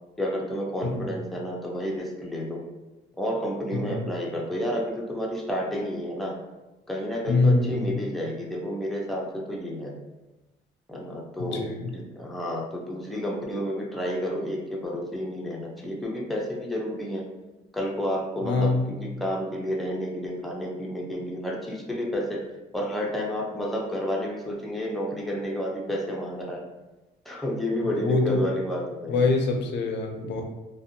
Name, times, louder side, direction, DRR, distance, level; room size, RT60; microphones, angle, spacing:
voice 1, 0.2-2.6 3.2-6.4 6.9-9.9 10.9-11.6 11.9-17.3 17.7-22.4 22.7-26.6 27.3-29.3, equal, ahead, -2 dB, 0.5 m, -30 dB
voice 2, 3.7-4.1 7.3-8.0 11.4-11.9 18.4-18.9 27.8-28.5 29.1-30.4, left 3 dB, 60° left, 3 dB, 0.5 m, -24 dB
2.5 x 2.2 x 2.6 m, 1.1 s
cardioid pair, 90°, 20 cm